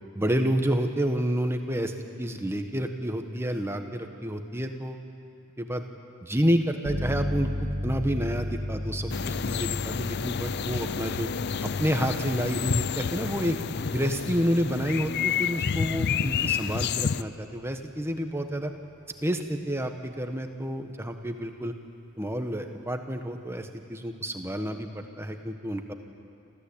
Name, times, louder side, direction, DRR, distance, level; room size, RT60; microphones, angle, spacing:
voice 1, 0.1-5.1 5.6-5.8 6.2-7.5 7.8-11.3 11.6-13.6 13.9-18.7 19.2-21.7 22.2-25.9, equal, 10° right, 5 dB, 1.3 m, -29 dB
sound 1, 6.8-17.4, left 1 dB, 35° right, 2.4 m, -36 dB
sound 2, 9.1-17.2, left 6 dB, 50° left, 0.4 m, -29 dB
28.0 x 14.5 x 8.7 m, 2.5 s
head